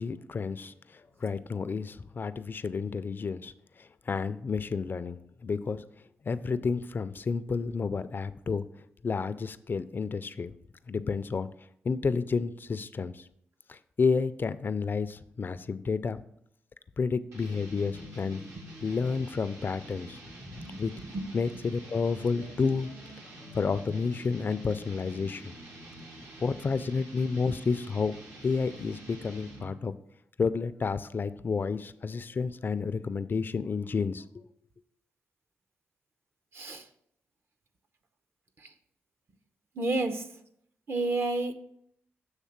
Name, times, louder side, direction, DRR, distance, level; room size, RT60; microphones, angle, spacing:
voice 1, 0.0-5.8 6.2-8.6 9.0-10.5 10.9-11.5 11.8-13.2 13.7-16.2 17.0-18.4 18.8-20.2 20.5-20.9 21.3-23.2 23.5-25.5 26.4-28.1 28.4-29.9 30.4-34.4, left 5 dB, 45° left, 14 dB, 0.4 m, -30 dB
sound 1, 17.3-29.8, right 1 dB, 75° right, 1.4 m, -47 dB
voice 2, 39.8-40.2 40.9-41.5, right 2 dB, 55° right, 8 dB, 0.8 m, -30 dB
7.3 x 3.3 x 5.8 m, 0.70 s
cardioid pair, 65°, 5 cm